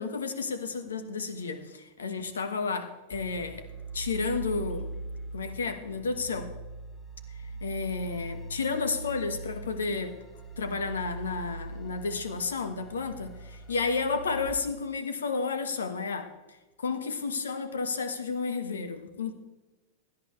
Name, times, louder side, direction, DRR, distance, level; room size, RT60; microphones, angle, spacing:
voice 1, 0.0-3.6 3.9-4.9 5.3-6.5 7.6-10.1 10.6-16.3 16.8-19.3, left 4 dB, 70° left, 10 dB, 1.3 m, -32 dB
sound 1, 3.1-14.5, right 2 dB, 20° left, 1.8 m, -41 dB
16.5 x 11.0 x 3.3 m, 1.1 s
figure-of-eight pair, 90°, 0 cm